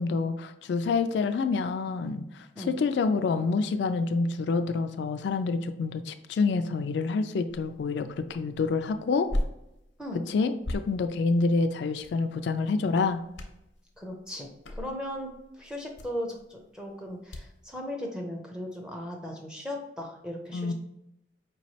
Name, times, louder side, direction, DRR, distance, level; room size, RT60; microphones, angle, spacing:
voice 1, 0.0-9.3 10.3-13.2 20.5-20.7, left 4 dB, 65° left, 8 dB, 0.3 m, -27 dB
sound 1, 7.5-17.7, left 1 dB, 85° left, 0.7 m, -40 dB
voice 2, 14.0-20.7, equal, 5° right, 0 dB, 0.5 m, -37 dB
5.0 x 3.0 x 2.7 m, 0.86 s
head